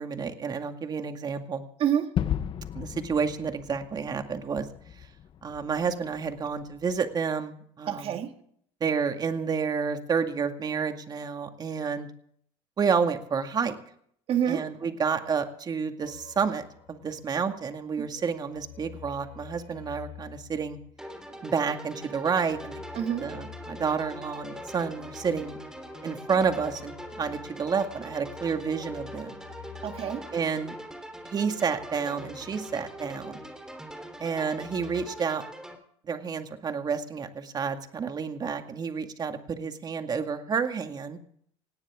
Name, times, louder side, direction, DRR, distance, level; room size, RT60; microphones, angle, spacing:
voice 1, 0.0-1.6 2.7-4.7 5.4-8.2 8.8-12.1 12.8-13.8 14.5-20.8 21.4-22.8 23.2-25.6 26.0-29.4 30.3-30.7 31.2-33.4 34.2-35.4 36.1-41.2, right 6 dB, 35° right, 6 dB, 2.1 m, -30 dB
voice 2, 1.8-2.1 7.9-8.3 14.3-14.7 18.0-18.1 22.9-23.3 29.8-30.3, right 9 dB, 50° right, 6 dB, 2.1 m, -27 dB
Gunshot gunfire / Fireworks / Boom, 2.2-7.0, left 9 dB, 45° left, 1.0 m, -35 dB
sound 1, 16.0-17.6 17.9-21.5 22.3-33.7 34.0-35.0, left 8 dB, 85° left, 6.1 m, -49 dB
sound 2, 21.0-35.7, equal, 5° right, 3.2 m, -42 dB
19.0 x 17.0 x 3.7 m, 0.63 s
supercardioid pair, 100°, 13 cm